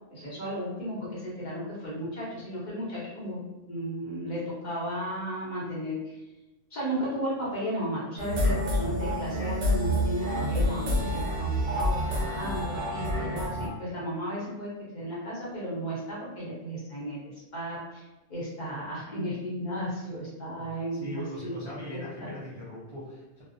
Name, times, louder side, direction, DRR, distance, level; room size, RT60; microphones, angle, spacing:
voice 1, 0.1-3.4 3.7-6.2 6.7-18.0 18.3-22.3, equal, 45° left, -8 dB, 0.8 m, -34 dB
sound 1, 8.2-13.7, equal, 85° right, 1.0 m, -28 dB
voice 2, 20.6-23.4, left 1 dB, 45° right, -9 dB, 0.3 m, -40 dB
2.5 x 2.0 x 2.5 m, 1.0 s
omnidirectional pair, 1.3 m